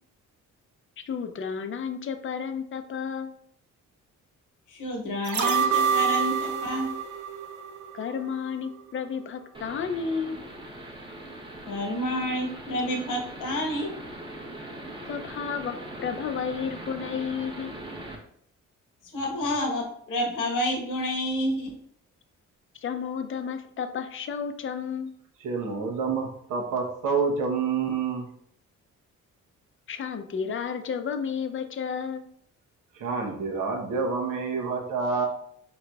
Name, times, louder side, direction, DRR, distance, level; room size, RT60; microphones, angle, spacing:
voice 1, 1.1-3.3 7.9-10.4 15.1-15.7 16.0-17.7 22.8-25.1 29.9-32.3, left 6 dB, 40° left, 8 dB, 0.5 m, -32 dB
voice 2, 4.7-6.9 11.6-13.9 19.1-21.7, equal, 80° left, 0 dB, 1.2 m, -29 dB
sound 1, 5.2-8.4 8.7-8.8, right 6 dB, 70° right, 0.5 m, -27 dB
sound 2, 9.5-18.2, right 1 dB, 15° right, 0.9 m, -40 dB
voice 3, 25.4-28.3 32.9-35.2, right 5 dB, 85° right, 0 dB, 1.0 m, -28 dB
4.4 x 3.9 x 2.3 m, 0.67 s
cardioid pair, 100°, 31 cm